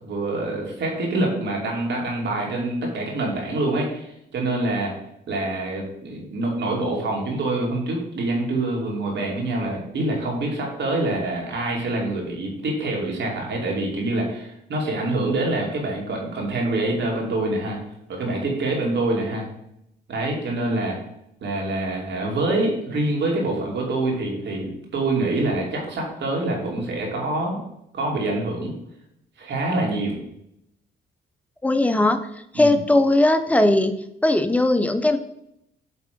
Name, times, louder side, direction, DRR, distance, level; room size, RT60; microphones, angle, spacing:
voice 1, 0.0-5.0 5.3-17.8 18.1-19.5 20.1-21.0 21.4-27.6 27.9-28.7 29.4-30.2 32.5-32.8, right 2 dB, 65° right, -1 dB, 2.6 m, -25 dB
voice 2, 31.6-32.2 32.5-33.9 34.2-35.2, left 1 dB, 5° left, 8 dB, 0.7 m, -18 dB
8.4 x 3.4 x 5.2 m, 0.78 s
cardioid pair, 90°, 20 cm